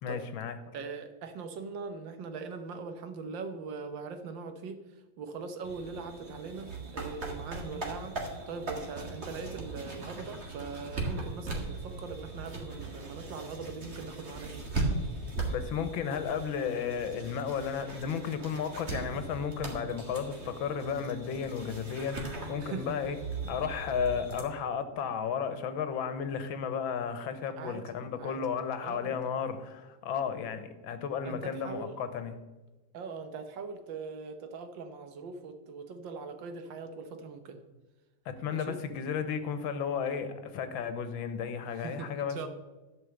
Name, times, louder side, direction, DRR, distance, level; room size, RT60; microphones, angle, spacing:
voice 1, 0.0-0.6 12.8-12.9 15.5-23.2 23.5-32.4 38.2-42.5, left 7 dB, 90° left, 10 dB, 1.7 m, -33 dB
voice 2, 0.7-14.6 22.6-23.1 27.4-27.9 28.2-28.4 28.8-29.2 31.2-32.0 32.9-37.6 38.5-38.8 41.7-42.5, right 4 dB, 75° right, 7 dB, 1.7 m, -41 dB
sound 1, 5.6-24.4, right 2 dB, 35° right, 1.9 m, -39 dB
11.5 x 5.5 x 7.7 m, 1.2 s
omnidirectional pair, 2.1 m